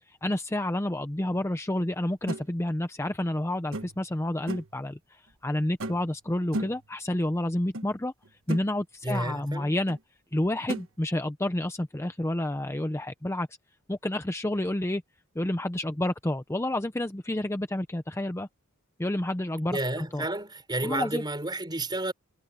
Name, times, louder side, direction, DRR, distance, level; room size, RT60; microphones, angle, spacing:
voice 1, 0.1-8.1 8.5-10.0 10.3-13.5 13.9-15.0 15.4-18.5 19.0-20.2 20.8-21.2, left 1 dB, 10° left, 0.6 m, -29 dB
sound 1, 2.3-2.4 3.7-4.1 4.5-4.8 5.8-6.1 6.5-6.9 7.7-7.9 8.2-8.7 9.9-10.0 10.7-10.9, right 1 dB, 65° right, 1.4 m, -35 dB
voice 2, 9.0-9.8 19.7-22.1, right 2 dB, 20° right, 5.4 m, -31 dB
head